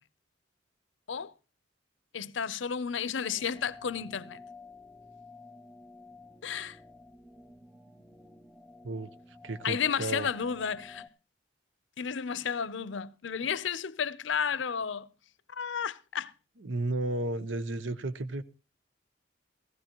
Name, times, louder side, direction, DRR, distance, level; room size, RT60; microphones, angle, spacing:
voice 1, 2.1-4.4 6.4-6.8 9.6-11.1 12.0-15.1 15.5-16.3, left 7 dB, 75° left, 0.6 m, -32 dB
sound 1, 3.2-11.1, left 3 dB, 5° right, 0.6 m, -52 dB
voice 2, 9.4-10.3 16.6-18.4, right 2 dB, 90° right, 0.9 m, -33 dB
17.5 x 15.5 x 3.0 m
head